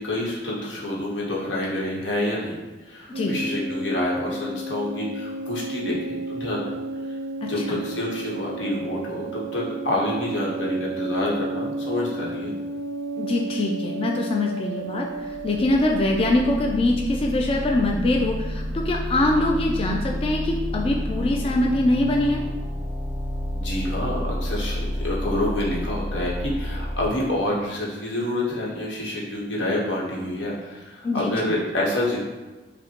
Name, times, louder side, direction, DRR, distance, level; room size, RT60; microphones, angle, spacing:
voice 1, 0.0-2.6 2.9-6.6 7.4-12.5 23.5-32.2, left 1 dB, 90° left, -4 dB, 1.0 m, -27 dB
sound 1, 3.1-16.4, right 2 dB, 75° right, 0.3 m, -32 dB
voice 2, 7.4-7.8 13.2-22.4 31.0-31.3, left 2 dB, 30° left, 0 dB, 0.3 m, -23 dB
sound 2, 15.2-27.1, equal, ahead, 1.0 m, -30 dB
5.2 x 2.1 x 2.9 m, 1.2 s
head